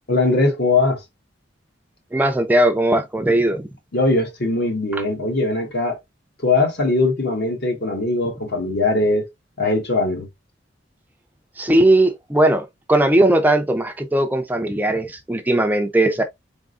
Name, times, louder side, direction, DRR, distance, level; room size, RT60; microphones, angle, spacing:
voice 1, 0.1-1.0 3.9-6.0 6.4-9.3 9.6-10.3, left 2 dB, 60° left, 1.4 m, -20 dB
voice 2, 2.1-3.6 4.9-5.0 11.6-16.2, right 1 dB, 10° right, 0.4 m, -18 dB
4.2 x 3.6 x 2.5 m
head